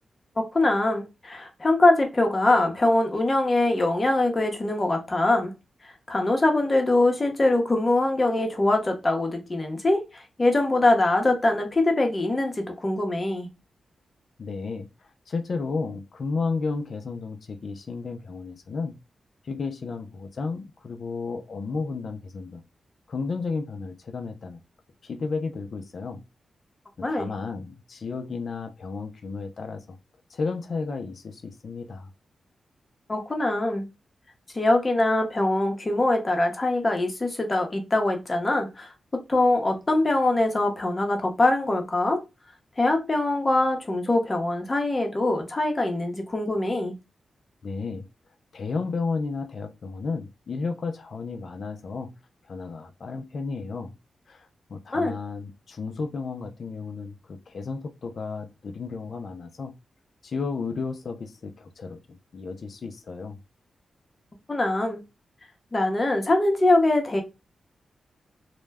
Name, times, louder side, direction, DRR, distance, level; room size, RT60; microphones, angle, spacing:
voice 1, 0.5-5.5 6.1-13.5 27.0-27.3 33.1-33.9 34.5-38.9 39.3-42.2 42.8-46.9 54.9-55.1 64.5-65.0 65.7-67.2, left 2 dB, 30° left, 0.7 m, -23 dB
voice 2, 14.4-18.9 19.4-22.6 23.1-24.6 25.0-26.2 27.0-30.0 30.3-32.1 47.6-48.1 48.5-52.2 52.5-53.9 54.3-59.7 60.2-63.4, left 4 dB, 60° left, 0.4 m, -33 dB
2.1 x 2.1 x 3.3 m
wide cardioid pair, 100°, 0 cm